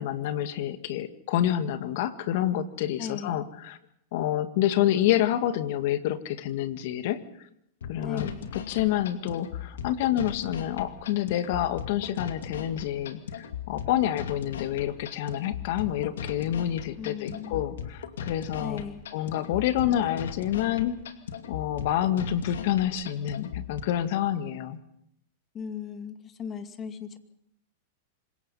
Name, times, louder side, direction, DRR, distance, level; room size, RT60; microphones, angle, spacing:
voice 1, 0.0-3.8 4.1-7.2 7.9-8.3 8.7-18.8 19.1-20.9 21.5-24.8, left 11 dB, 60° left, 10 dB, 1.8 m, -28 dB
voice 2, 3.0-3.4 8.0-8.5 17.0-17.6 18.6-19.0 25.5-27.2, left 7 dB, 30° left, 8 dB, 2.4 m, -37 dB
sound 1, 7.8-23.8, left 7 dB, 85° left, 2.3 m, -38 dB
26.0 x 22.0 x 5.6 m, 0.78 s
hypercardioid pair, 120°, 0 cm